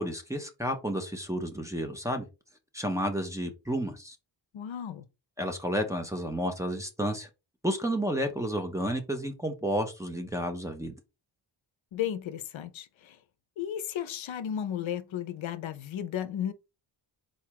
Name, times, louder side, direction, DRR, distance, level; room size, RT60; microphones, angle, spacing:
voice 1, 0.0-2.3 2.7-4.2 5.4-7.3 7.6-10.9, equal, 5° right, 0.6 m, -31 dB
voice 2, 4.5-5.1 11.9-13.2 13.6-16.5, left 10 dB, 75° left, 0.6 m, -34 dB
4.1 x 2.3 x 4.5 m
wide cardioid pair, 140°, 48 cm